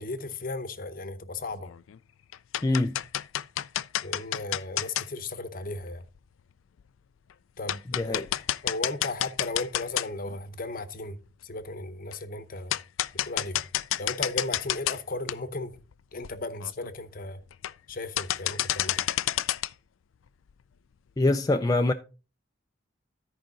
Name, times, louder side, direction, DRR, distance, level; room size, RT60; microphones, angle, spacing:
voice 1, 0.0-1.7 4.0-6.0 7.6-8.3 8.6-11.2 11.4-12.8 13.2-13.6 14.0-15.8 16.1-17.4 17.9-19.0, left 2 dB, 45° left, 0.8 m, -35 dB
sound 1, 1.6-2.0 2.3-5.1 6.2-6.3 6.8-6.9 7.3-7.4 7.7-10.4 10.8-10.9 12.1-12.2 12.7-15.0 15.3-15.4 15.9-16.0 16.2-16.3 16.6-16.9 17.5-17.9 18.2-19.7, left 13 dB, 85° left, 0.4 m, -29 dB
voice 2, 2.6-3.0 8.0-8.2 21.2-21.9, left 2 dB, 20° left, 0.4 m, -24 dB
13.0 x 5.0 x 3.9 m
head